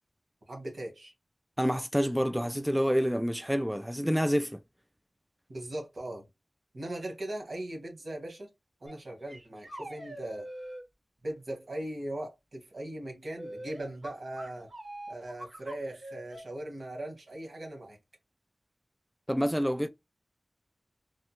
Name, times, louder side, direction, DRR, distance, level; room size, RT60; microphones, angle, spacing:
voice 1, 0.5-1.1 5.5-6.3 6.7-8.5 8.8-10.5 11.2-14.7 15.1-18.0, right 1 dB, 80° right, 1.5 m, -39 dB
voice 2, 1.6-4.6 19.3-19.9, equal, 5° right, 0.3 m, -28 dB
sound 1, 8.9-9.0 9.3-10.8 13.4-16.4, right 1 dB, 55° right, 2.3 m, -43 dB
3.5 x 2.1 x 2.9 m
wide cardioid pair, 55°, 0 cm